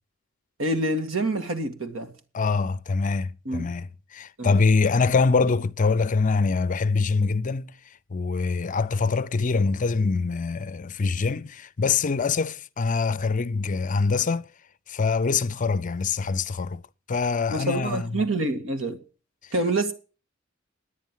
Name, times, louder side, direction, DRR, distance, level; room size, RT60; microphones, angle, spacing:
voice 1, 0.6-2.1 3.5-3.7 4.4-4.6 17.5-19.0 19.5-19.9, right 1 dB, 85° right, 2.0 m, -26 dB
voice 2, 2.3-7.7 8.1-14.5 14.9-16.8 17.1-18.2 19.4-19.5, left 4 dB, 40° left, 0.5 m, -24 dB
10.0 x 9.5 x 7.4 m
head